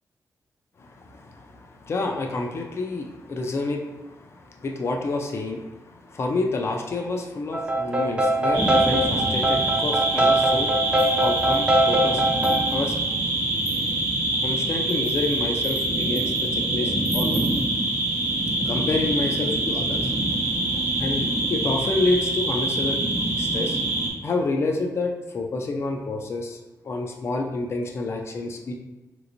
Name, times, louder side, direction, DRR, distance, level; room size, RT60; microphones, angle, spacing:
voice 1, 0.8-13.0 14.4-17.4 18.7-20.1 21.0-23.0 23.4-23.8 24.2-26.6 26.8-28.7, left 3 dB, 45° left, 2 dB, 0.4 m, -29 dB
sound 1, 7.5-12.6, right 1 dB, 15° right, 0.4 m, -22 dB
sound 2, 8.5-24.1, right 2 dB, 90° right, 0.8 m, -25 dB
sound 3, 11.0-11.7 12.2-12.9 13.6-14.1 14.7-16.4 17.0-17.6, right 1 dB, 35° right, 0.8 m, -40 dB
3.2 x 3.0 x 2.5 m, 1.1 s
wide cardioid pair, 115°, 6 cm